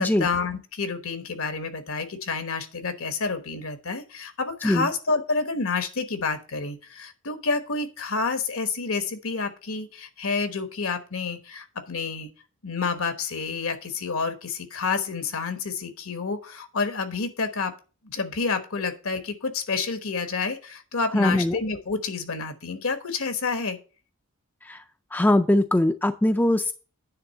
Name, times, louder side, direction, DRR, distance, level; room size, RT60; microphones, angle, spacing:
voice 1, 0.0-12.3 12.6-17.7 18.0-23.8, left 4 dB, 75° left, 8 dB, 1.2 m, -29 dB
voice 2, 21.1-21.6 24.7-24.8 25.1-26.7, left 1 dB, 10° left, 8 dB, 0.3 m, -21 dB
9.5 x 3.6 x 7.0 m, 0.36 s
head